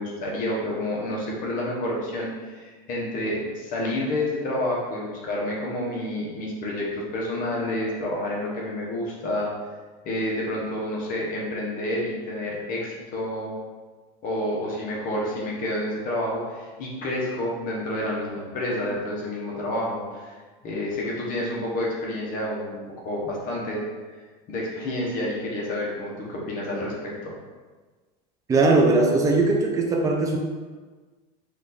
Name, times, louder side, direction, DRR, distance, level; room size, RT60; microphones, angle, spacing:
voice 1, 0.0-9.5 10.0-13.5 14.2-20.3 20.6-22.8 23.0-23.8 24.5-27.3, left 1 dB, 40° left, -3 dB, 1.1 m, -29 dB
voice 2, 28.5-30.4, right 3 dB, 15° right, 0 dB, 0.6 m, -20 dB
5.0 x 2.6 x 4.0 m, 1.4 s
supercardioid pair, 135°, 20 cm